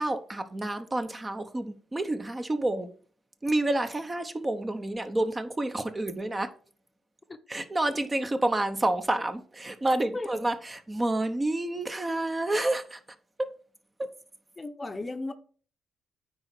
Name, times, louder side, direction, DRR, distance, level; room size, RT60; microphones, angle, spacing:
voice 1, 0.0-2.9 3.4-6.5 7.5-13.0 13.4-13.5 14.0-14.1, right 1 dB, 20° right, 0.9 m, -29 dB
voice 2, 14.6-15.3, left 2 dB, 20° left, 0.9 m, -34 dB
9.6 x 3.9 x 6.0 m
cardioid pair, 90°, 0 cm